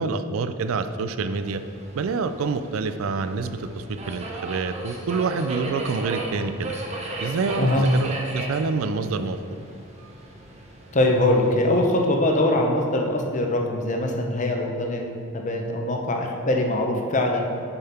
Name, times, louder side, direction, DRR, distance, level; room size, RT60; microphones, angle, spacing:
voice 1, 0.0-1.6 1.9-6.7 7.2-9.4, right 4 dB, 80° right, 10 dB, 0.4 m, -27 dB
Subway metro underground, 1.3-11.9, right 2 dB, 30° right, 0.8 m, -36 dB
voice 2, 10.9-17.5, left 1 dB, 35° left, 2 dB, 0.7 m, -22 dB
6.9 x 5.6 x 4.3 m, 2.5 s
head